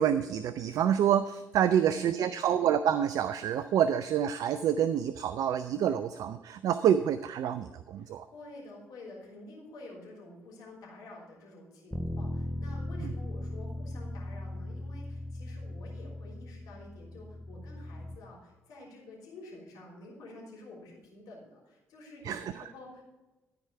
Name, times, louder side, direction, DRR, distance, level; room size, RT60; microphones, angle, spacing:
voice 1, 0.0-8.3 22.3-22.4, right 9 dB, 60° right, 13 dB, 0.4 m, -27 dB
voice 2, 1.6-2.5 8.0-23.0, left 1 dB, 65° left, -3 dB, 3.4 m, -49 dB
Bass guitar, 11.9-18.2, left 1 dB, 5° right, 0.9 m, -38 dB
13.0 x 4.8 x 5.7 m, 1.1 s
hypercardioid pair, 45°, 7 cm